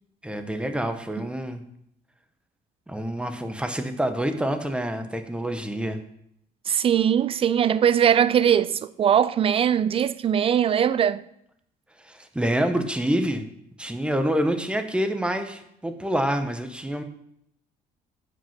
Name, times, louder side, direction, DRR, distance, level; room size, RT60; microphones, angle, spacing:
voice 1, 0.2-1.6 2.9-6.0 12.0-13.5 13.8-17.0, right 1 dB, 5° right, 0.8 m, -27 dB
voice 2, 6.7-11.2, right 9 dB, 35° right, 0.4 m, -21 dB
7.3 x 5.2 x 5.7 m
cardioid pair, 110°, 17 cm